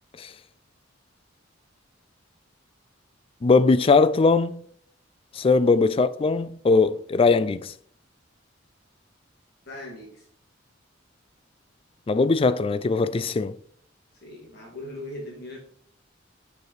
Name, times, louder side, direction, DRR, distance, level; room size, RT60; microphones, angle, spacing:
voice 1, 3.4-4.6 5.3-7.7 12.1-13.5, left 4 dB, 30° left, 0.3 m, -20 dB
voice 2, 9.7-10.2 14.2-15.6, left 1 dB, 55° left, 2.1 m, -39 dB
6.8 x 4.9 x 4.0 m
head